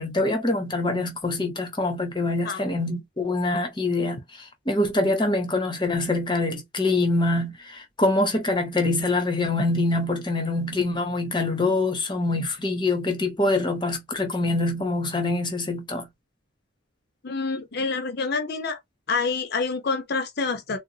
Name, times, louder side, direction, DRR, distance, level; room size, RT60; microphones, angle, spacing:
voice 1, 0.0-16.1, left 2 dB, 20° left, 0.8 m, -25 dB
voice 2, 17.2-18.8 19.1-20.8, left 4 dB, 50° left, 0.6 m, -27 dB
3.9 x 2.0 x 2.7 m
head